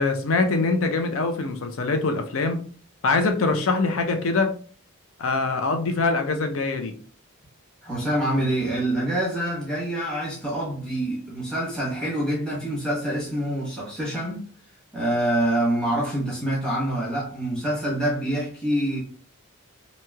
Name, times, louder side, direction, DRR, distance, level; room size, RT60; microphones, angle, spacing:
voice 1, 0.0-2.6 3.0-4.5 5.2-6.9, left 3 dB, 65° left, 0.5 m, -23 dB
voice 2, 7.8-14.4 14.9-19.0, right 1 dB, 5° left, 0.9 m, -26 dB
3.0 x 2.7 x 2.2 m
head